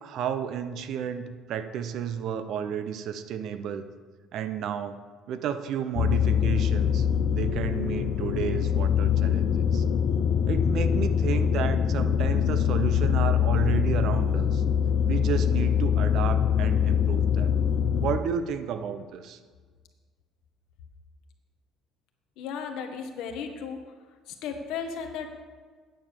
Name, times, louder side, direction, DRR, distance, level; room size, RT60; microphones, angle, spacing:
voice 1, 0.0-3.9 4.3-5.0 5.3-7.1 7.3-9.8 10.5-14.6 15.1-17.5 18.0-19.4, right 8 dB, 65° right, 10 dB, 0.8 m, -32 dB
sound 1, 6.0-18.2, left 8 dB, 60° left, 0.6 m, -24 dB
voice 2, 22.4-23.8 24.3-25.3, left 6 dB, 80° left, 5 dB, 1.5 m, -35 dB
9.2 x 7.6 x 7.0 m, 1.5 s
cardioid pair, 110°, 0 cm